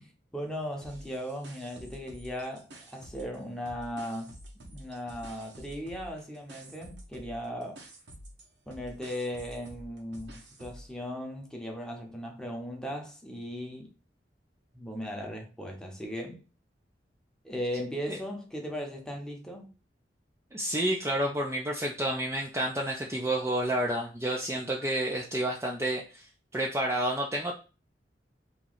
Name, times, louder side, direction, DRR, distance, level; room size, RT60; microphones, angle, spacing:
voice 1, 0.0-7.8 8.7-13.9 14.7-16.4 17.4-19.7, equal, 5° left, 0.8 m, -37 dB
sound 1, 0.8-3.4 3.7-10.9, right 1 dB, 75° right, 1.0 m, -49 dB
voice 2, 20.5-27.5, right 1 dB, 15° right, 0.4 m, -30 dB
3.0 x 2.7 x 3.9 m
head